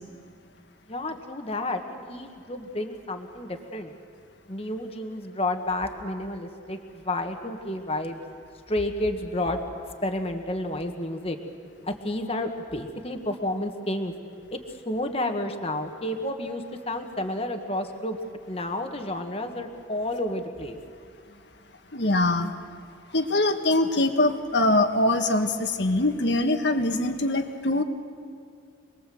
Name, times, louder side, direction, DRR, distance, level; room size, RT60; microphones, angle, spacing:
voice 1, 0.9-3.9 4.5-8.2 8.7-9.6 10.0-11.4 11.8-14.1 14.5-14.6 14.8-18.2 18.5-20.8, left 1 dB, 30° left, 5 dB, 1.6 m, -30 dB
voice 2, 21.9-22.5 23.1-27.8, left 2 dB, 60° left, 6 dB, 1.7 m, -23 dB
27.0 x 20.5 x 7.8 m, 2.3 s
head